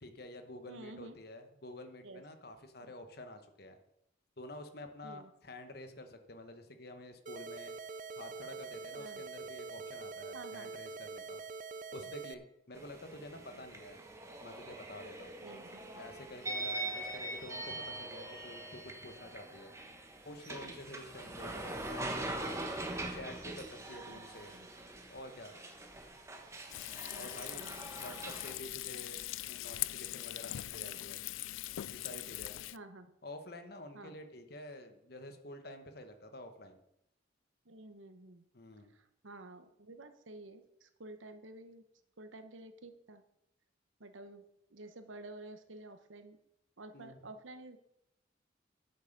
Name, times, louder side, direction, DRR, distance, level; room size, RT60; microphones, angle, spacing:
voice 1, 0.0-3.8 4.4-7.7 8.2-11.4 11.9-14.0 14.4-15.3 16.0-19.7 20.2-22.6 23.1-24.6 25.1-25.5 27.1-29.2 29.5-31.2 31.9-32.6 33.2-36.8 38.5-38.9 46.9-47.2, left 1 dB, 55° left, 7 dB, 1.3 m, -49 dB
voice 2, 0.7-1.2 2.0-2.2 5.0-5.3 9.0-9.2 10.3-10.7 12.0-12.1 13.5-13.6 15.4-16.0 16.8-16.9 24.1-24.2 24.5-24.7 27.1-27.9 30.8-31.0 32.7-33.1 33.9-34.2 37.6-38.4 38.9-41.8 42.2-43.2 44.0-46.4 46.8-47.8, right 2 dB, 90° right, 9 dB, 1.1 m, -51 dB
sound 1, 7.3-12.3, right 4 dB, 40° right, 0.5 m, -45 dB
sound 2, 12.7-28.5, right 2 dB, 15° right, 1.2 m, -43 dB
Frying (food), 26.7-32.8, left 16 dB, 90° left, 0.3 m, -41 dB
9.6 x 8.0 x 6.7 m, 0.82 s
head